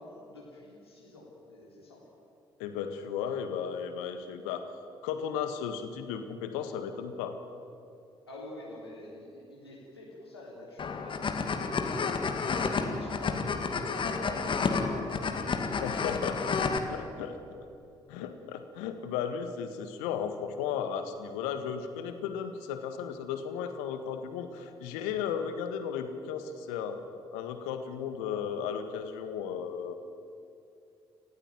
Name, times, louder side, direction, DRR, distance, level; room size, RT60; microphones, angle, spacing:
voice 1, 0.0-2.0 8.3-12.3 12.5-15.3, left 2 dB, 85° left, -5 dB, 3.6 m, -46 dB
voice 2, 2.6-4.7 5.0-7.4 15.8-16.5 16.9-17.4 18.1-27.0 27.3-29.9, left 7 dB, 70° left, 8 dB, 1.7 m, -35 dB
sound 1, 10.8-16.8, left 5 dB, 40° left, 2.1 m, -30 dB
28.5 x 15.0 x 9.3 m, 2.7 s
figure-of-eight pair, 45°, 13 cm